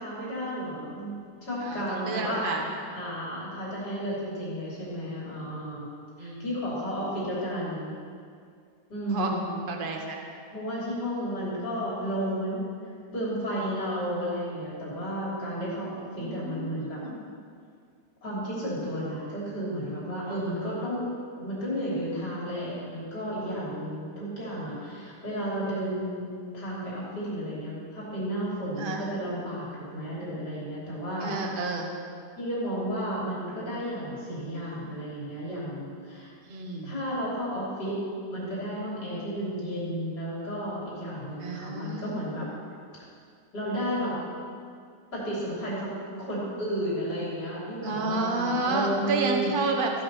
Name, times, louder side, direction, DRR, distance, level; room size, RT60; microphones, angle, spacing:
voice 1, 0.0-2.4 2.9-5.9 6.2-7.9 8.9-9.5 10.5-12.7 13.1-17.0 18.2-21.1 21.4-26.3 26.5-31.4 32.4-36.3 36.8-38.0 38.3-42.5 43.5-44.1 45.1-49.5, equal, 70° left, -7 dB, 4.3 m, -32 dB
voice 2, 1.6-2.6 6.2-6.5 9.1-9.3 9.7-10.2 16.1-17.2 28.8-29.1 31.2-31.9 36.5-37.0 41.4-42.2 47.8-49.9, right 3 dB, 35° right, 2 dB, 1.3 m, -30 dB
15.5 x 11.0 x 4.3 m, 2.2 s
omnidirectional pair, 1.8 m